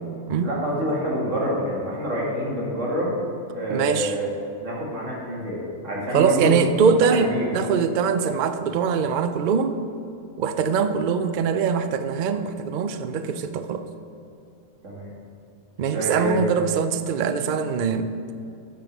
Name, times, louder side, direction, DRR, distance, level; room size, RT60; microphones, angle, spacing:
voice 1, 0.4-3.2 3.5-6.6 7.0-7.6 14.8-15.1 15.9-16.6, equal, 60° right, -4 dB, 2.5 m, -27 dB
voice 2, 3.7-4.1 6.1-9.8 10.4-13.8 15.8-18.1, right 6 dB, 80° right, 10 dB, 0.4 m, -22 dB
7.9 x 7.0 x 6.0 m, 2.6 s
omnidirectional pair, 1.5 m